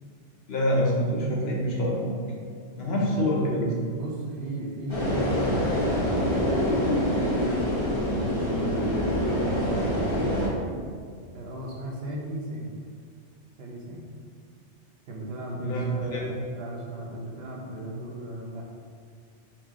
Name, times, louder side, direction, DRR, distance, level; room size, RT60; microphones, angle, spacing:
voice 1, 0.5-2.1 2.8-3.7 15.6-16.2, equal, 60° left, -3 dB, 1.0 m, -26 dB
voice 2, 3.0-6.6 7.8-9.8 11.3-12.8 13.6-14.1 15.1-18.6, right 1 dB, 60° right, -2 dB, 0.9 m, -37 dB
sound 1, 4.9-10.5, equal, 25° left, 1.0 m, -25 dB
4.8 x 2.9 x 3.6 m, 2.1 s
omnidirectional pair, 1.2 m